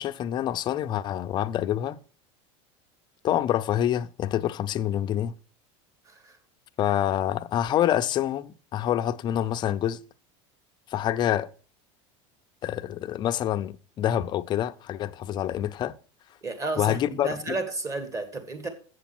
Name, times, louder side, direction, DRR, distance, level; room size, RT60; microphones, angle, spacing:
voice 1, 0.0-2.0 3.2-5.3 6.8-10.0 10.9-11.5 12.6-16.0 16.8-17.5, left 11 dB, 30° left, 0.4 m, -27 dB
voice 2, 6.1-6.4 16.4-18.7, right 2 dB, 20° right, 1.6 m, -32 dB
7.8 x 7.0 x 5.9 m
supercardioid pair, 150°, 16 cm